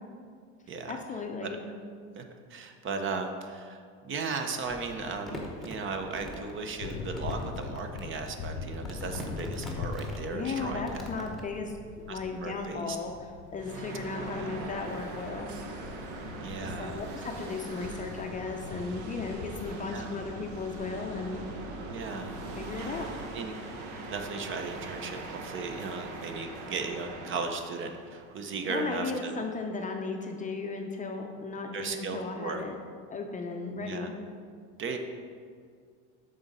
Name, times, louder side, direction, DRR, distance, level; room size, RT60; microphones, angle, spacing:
voice 1, 0.9-1.6 10.3-13.1 13.5-15.5 15.7-15.9 16.6-21.4 22.6-23.4 28.7-32.8 33.1-34.1, left 4 dB, 20° left, 3 dB, 0.5 m, -36 dB
voice 2, 2.5-10.9 12.1-13.0 14.2-14.6 16.4-17.0 19.9-20.2 21.9-22.4 23.3-23.5 24.1-29.3 31.7-32.6 33.8-34.1 34.8-35.0, right 4 dB, 35° right, 5 dB, 0.7 m, -36 dB
Crumpling crinkling, 4.6-11.4, left 1 dB, ahead, 1.0 m, -43 dB
sound 1, 4.9-20.8, left 5 dB, 65° left, 0.7 m, -43 dB
sound 2, 13.6-28.7, right 2 dB, 65° right, 1.0 m, -41 dB
6.8 x 3.9 x 5.3 m, 2.1 s
supercardioid pair, 110°, 34 cm